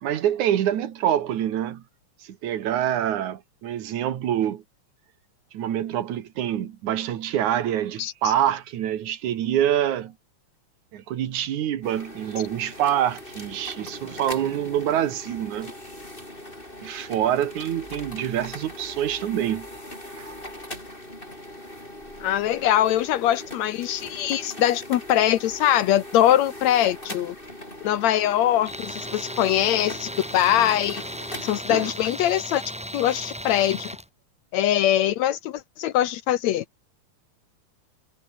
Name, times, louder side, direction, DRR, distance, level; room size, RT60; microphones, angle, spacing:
voice 1, 0.0-1.8 2.2-4.6 5.5-10.1 10.9-15.7 16.8-19.7 20.2-20.3 31.7-31.9, right 11 dB, 70° right, 3.0 m, -26 dB
sound 1, 11.8-31.6, left 1 dB, 15° left, 8.3 m, -40 dB
voice 2, 22.2-27.4 27.8-31.0 31.4-32.6 32.9-33.9 34.5-36.7, left 12 dB, 70° left, 1.9 m, -22 dB
Tools, 28.7-34.1, equal, ahead, 1.7 m, -36 dB
omnidirectional pair, 3.5 m